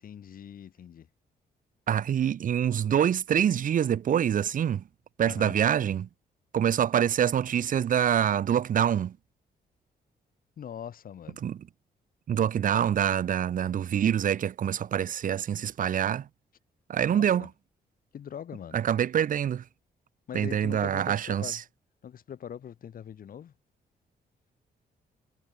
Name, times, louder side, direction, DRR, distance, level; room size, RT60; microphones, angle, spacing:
voice 1, 0.0-1.1 5.2-5.5 10.6-11.4 17.1-17.5 18.1-18.8 20.3-21.6 22.0-23.5, left 9 dB, 60° left, 3.3 m, -42 dB
voice 2, 1.9-4.8 5.2-6.1 6.5-9.2 11.4-11.6 12.3-16.3 16.9-17.5 18.7-19.6 20.3-21.6, right 9 dB, 55° right, 1.0 m, -25 dB
cardioid pair, 130°, 17 cm